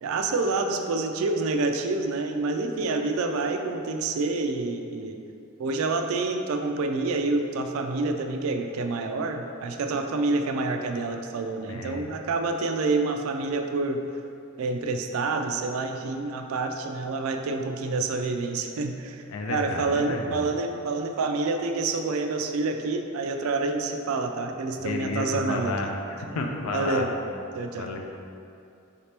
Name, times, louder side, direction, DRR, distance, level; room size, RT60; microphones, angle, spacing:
voice 1, 0.0-5.2 5.6-14.0 14.6-25.7 26.3-26.4 26.7-27.1 27.5-27.9, right 3 dB, 65° right, 5 dB, 0.3 m, -28 dB
voice 2, 11.7-12.1 19.3-20.4 24.8-27.1 27.7-28.0, left 3 dB, 70° left, 2 dB, 0.4 m, -31 dB
4.9 x 2.8 x 3.3 m, 2.6 s
head